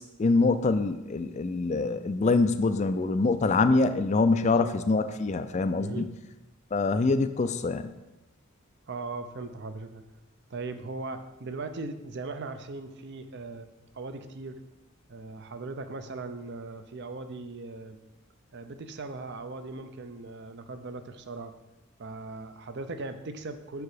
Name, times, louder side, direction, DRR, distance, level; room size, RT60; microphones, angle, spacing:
voice 1, 0.0-6.1 6.7-7.9, left 3 dB, 30° left, 10 dB, 0.3 m, -25 dB
voice 2, 4.3-4.7 5.8-6.1 8.9-10.0 10.5-14.6 15.1-18.0 18.5-21.5 22.0-23.8, right 3 dB, 50° right, 9 dB, 0.5 m, -39 dB
6.8 x 4.7 x 4.9 m, 1.0 s
head